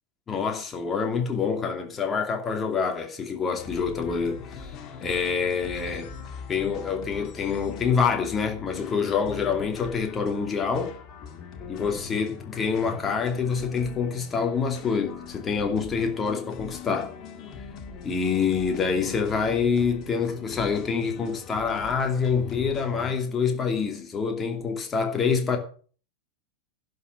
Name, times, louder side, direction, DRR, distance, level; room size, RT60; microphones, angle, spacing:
voice 1, 0.3-4.7 5.0-6.1 6.5-11.0 11.7-17.1 18.0-25.6, left 5 dB, 20° left, 2.6 m, -26 dB
sound 1, 3.6-23.1, left 6 dB, 35° left, 1.8 m, -41 dB
11.0 x 6.6 x 7.4 m
figure-of-eight pair, 90°, 0 cm